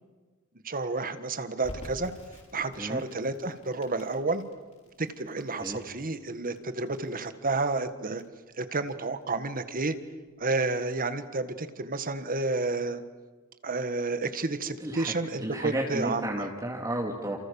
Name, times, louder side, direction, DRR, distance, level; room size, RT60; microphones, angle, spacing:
voice 1, 0.6-2.1 2.5-4.4 5.0-8.2 8.6-10.0 10.4-13.0 13.6-16.5, right 3 dB, 40° right, 10 dB, 1.7 m, -30 dB
Crackle, 1.6-12.4, equal, 35° left, 6.7 m, -51 dB
voice 2, 14.8-17.4, right 1 dB, 15° right, -1 dB, 2.6 m, -33 dB
29.5 x 28.0 x 7.1 m, 1.3 s
head